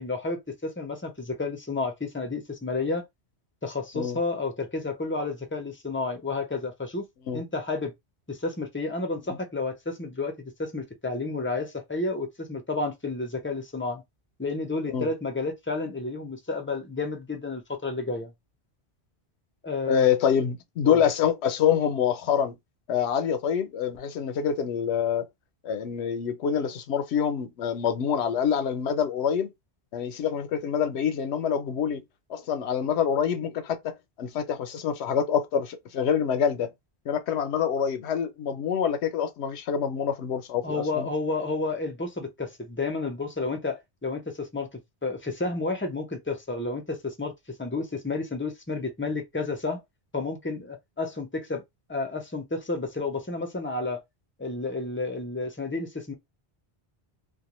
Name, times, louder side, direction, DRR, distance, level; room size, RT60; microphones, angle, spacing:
voice 1, 0.0-3.1 3.6-7.1 7.3-7.9 8.3-14.0 14.4-18.3 19.6-20.1 20.9-21.0 40.6-49.8 50.1-51.6 51.9-54.0 54.4-56.1, left 3 dB, 15° left, 0.4 m, -31 dB
voice 2, 19.9-22.5 22.9-25.3 25.6-29.5 29.9-32.0 32.3-36.7 37.1-41.1, left 8 dB, 80° left, 0.9 m, -26 dB
2.4 x 2.1 x 2.9 m
omnidirectional pair, 1.1 m